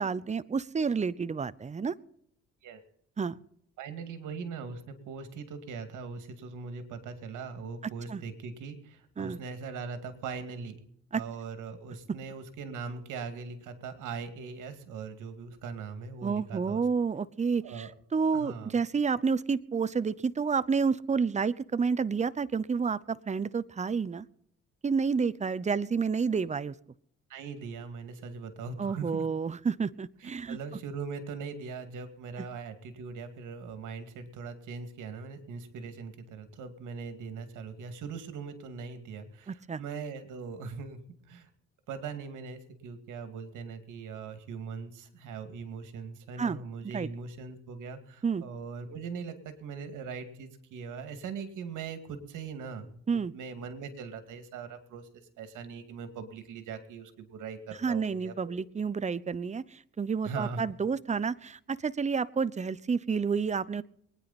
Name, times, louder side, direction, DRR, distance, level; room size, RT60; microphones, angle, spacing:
voice 1, 0.0-1.9 3.2-3.4 8.1-8.2 9.2-9.4 11.1-11.2 16.2-24.3 24.8-26.7 28.8-30.6 39.5-39.8 46.4-46.6 46.9-47.1 48.2-48.4 53.1-53.3 57.8-63.8, right 5 dB, 25° right, 15 dB, 0.7 m, -30 dB
voice 2, 3.8-10.8 11.1-16.8 17.6-17.9 18.3-18.8 27.3-29.3 30.2-41.0 41.3-41.5 41.9-55.1 55.4-58.6 60.2-60.6, right 5 dB, 85° right, 9 dB, 2.3 m, -40 dB
23.5 x 9.9 x 4.2 m, 0.68 s
cardioid pair, 90°, 30 cm